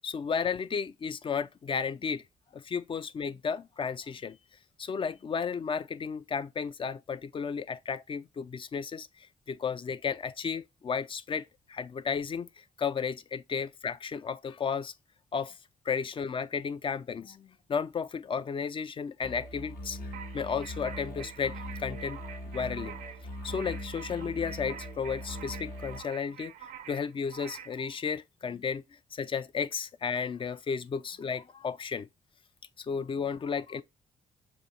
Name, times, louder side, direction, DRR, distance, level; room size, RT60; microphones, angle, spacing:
voice 1, 0.0-2.2 2.5-4.4 4.8-12.5 12.8-14.9 15.3-15.6 15.9-20.0 20.3-22.2 22.5-22.9 23.4-26.5 26.9-28.8 29.1-32.1 32.8-33.8, left 6 dB, 30° left, 0.3 m, -33 dB
sound 1, 19.2-26.0, equal, 65° left, 0.8 m, -41 dB
sound 2, 20.1-27.8, right 9 dB, 65° right, 0.5 m, -47 dB
6.3 x 2.4 x 2.8 m
hypercardioid pair, 40°, 17 cm